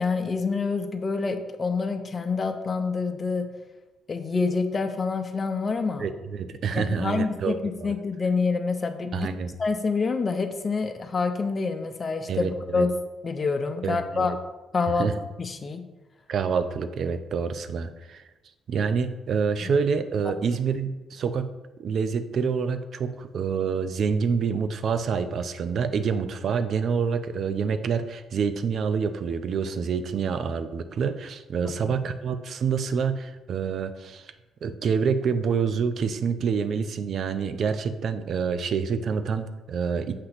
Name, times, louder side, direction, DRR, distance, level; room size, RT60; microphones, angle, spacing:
voice 1, 0.0-3.5 4.1-6.1 6.9-9.3 9.6-12.5 12.7-12.9 13.2-14.3 14.7-15.8 19.6-19.7 31.6-32.0, left 4 dB, 35° left, 7 dB, 0.6 m, -27 dB
voice 2, 6.0-7.9 9.1-9.6 12.3-12.9 13.8-14.4 15.0-15.1 16.3-18.2 18.7-21.5 21.8-34.3 34.6-40.2, right 6 dB, 60° right, 11 dB, 0.5 m, -27 dB
6.6 x 2.9 x 5.7 m, 1.1 s
cardioid pair, 90°, 0 cm